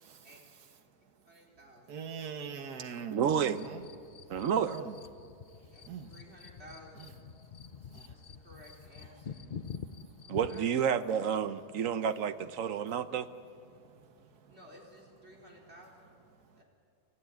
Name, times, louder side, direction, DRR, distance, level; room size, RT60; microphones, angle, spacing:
voice 1, 1.2-2.1 5.7-7.2 8.0-9.6 10.5-10.7 14.5-16.2 16.6-16.7, equal, 40° right, 4.6 m, -55 dB
voice 2, 1.9-3.8 4.7-5.0 5.9-6.1 7.9-8.1 9.8-9.9 13.7-14.5, right 7 dB, 85° right, 1.7 m, -43 dB
voice 3, 3.1-3.6 4.3-4.8 10.3-13.3, right 8 dB, 65° right, 1.1 m, -30 dB
sound 1, 3.3-10.8, left 6 dB, 50° left, 0.6 m, -47 dB
25.5 x 14.5 x 9.3 m
omnidirectional pair, 1.6 m